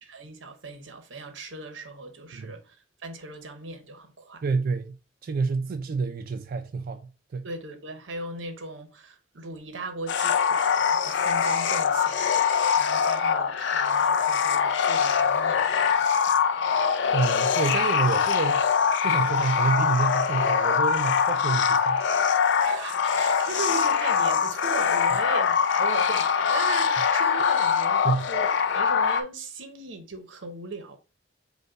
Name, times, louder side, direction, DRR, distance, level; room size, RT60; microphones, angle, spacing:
voice 1, 0.0-2.8 3.0-4.4 7.4-16.4 22.6-31.0, right 3 dB, 85° right, 0.9 m, -38 dB
voice 2, 4.4-5.0 5.2-7.0 7.3-7.5 17.1-18.6 19.0-22.0 28.0-28.3, right 4 dB, 50° right, 0.4 m, -28 dB
sound 1, 10.1-29.2, left 6 dB, 70° left, 0.5 m, -23 dB
5.2 x 2.2 x 4.5 m
head